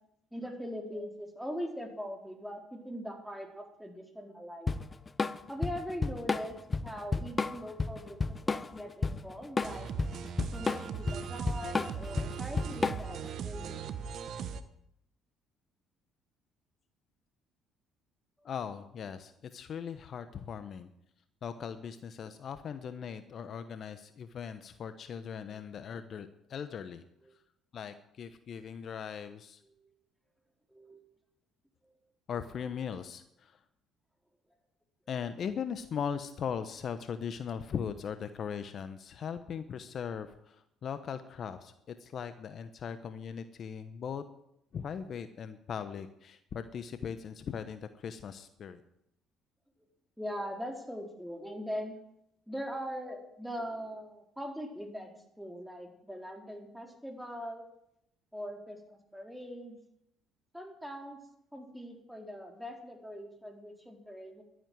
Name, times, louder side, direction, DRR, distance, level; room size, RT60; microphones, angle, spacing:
voice 1, 0.3-4.8 5.5-9.9 10.5-14.2 27.2-27.3 29.6-29.9 30.7-31.0 50.2-51.9 52.5-57.7 58.3-59.8 60.5-61.2 61.5-64.4, equal, ahead, 2 dB, 4.3 m, -41 dB
Drum kit / Drum, 4.7-13.3, left 4 dB, 30° left, 0.8 m, -32 dB
sound 1, 9.6-14.6, right 7 dB, 60° right, 1.3 m, -39 dB
voice 2, 18.4-20.9 21.4-27.0 27.7-29.6 32.3-33.6 35.1-44.2 44.7-48.8, left 7 dB, 55° left, 10 dB, 1.1 m, -39 dB
12.0 x 11.0 x 9.4 m, 0.78 s
hypercardioid pair, 60°, 0 cm